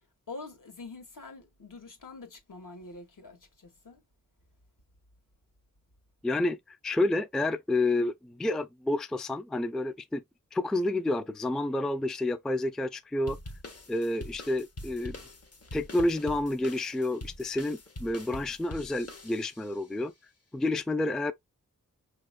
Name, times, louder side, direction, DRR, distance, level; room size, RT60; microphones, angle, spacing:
voice 1, 0.3-4.0 15.6-15.7, left 3 dB, 70° left, 1.5 m, -45 dB
voice 2, 6.2-10.2 10.5-13.4 13.9-15.2 15.7-20.1 20.5-21.3, left 2 dB, ahead, 0.3 m, -29 dB
sound 1, 13.3-19.8, left 1 dB, 45° left, 1.1 m, -44 dB
5.4 x 2.9 x 2.2 m
cardioid pair, 55°, 34 cm